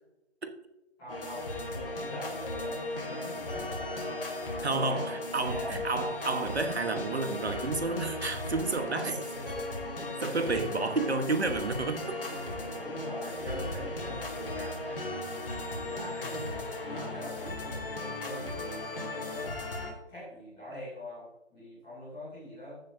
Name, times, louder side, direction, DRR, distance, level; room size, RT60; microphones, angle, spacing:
voice 1, 1.0-1.4 1.7-4.3 4.6-5.8 9.0-9.2 12.8-15.1 15.8-16.5 16.8-19.5 20.1-22.8, left 1 dB, ahead, 0.9 m, -43 dB
sound 1, 1.1-19.9, left 2 dB, 55° left, 2.5 m, -36 dB
voice 2, 4.6-9.1 10.2-12.1, right 3 dB, 65° right, 1.3 m, -31 dB
15.0 x 6.6 x 2.7 m
figure-of-eight pair, 165°, 34 cm